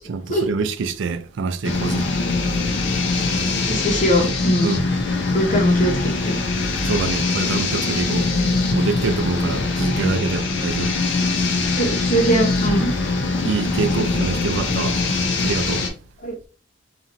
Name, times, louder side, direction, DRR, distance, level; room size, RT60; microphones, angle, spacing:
voice 1, 0.1-2.1 4.6-4.8 6.8-8.3 8.7-11.0 13.4-15.0 15.4-15.9, right 4 dB, 70° right, 0.4 m, -25 dB
sound 1, 1.6-15.9, left 3 dB, 65° left, 0.6 m, -22 dB
voice 2, 3.7-4.7 5.3-5.9 6.2-6.4 11.8-12.9 16.2-16.4, right 1 dB, 40° left, 0.8 m, -21 dB
3.0 x 2.5 x 2.5 m
head